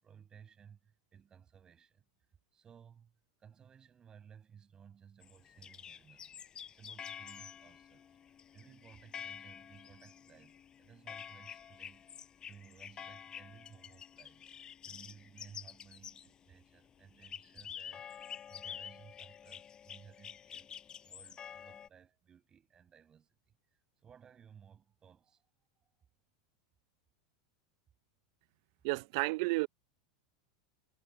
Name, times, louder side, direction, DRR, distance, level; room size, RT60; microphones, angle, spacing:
voice 1, 0.0-2.0 2.5-8.2 8.5-12.2 12.5-14.5 14.8-20.7 21.0-25.4, right 7 dB, 30° right, 7.5 m, -59 dB
sound 1, 5.2-16.4 17.2-21.9, left 8 dB, 30° left, 5.5 m, -49 dB
voice 2, 28.8-29.7, right 25 dB, 60° right, 0.7 m, -31 dB
hypercardioid pair, 100°, 3 cm